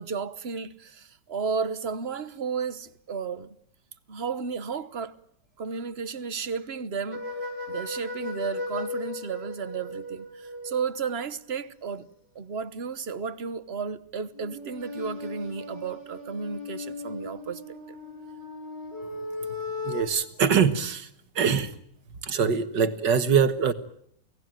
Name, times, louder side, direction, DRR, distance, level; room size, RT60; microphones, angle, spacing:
voice 1, 0.0-3.5 4.1-5.1 5.6-7.3 7.7-12.1 12.3-17.6, right 5 dB, 40° right, 1.2 m, -33 dB
sound 1, 7.1-11.0 14.3-20.0, left 2 dB, 80° left, 8.1 m, -37 dB
voice 2, 19.8-21.1 21.4-21.7 22.2-23.7, right 6 dB, 75° right, 2.2 m, -23 dB
29.5 x 18.5 x 9.1 m
omnidirectional pair, 2.0 m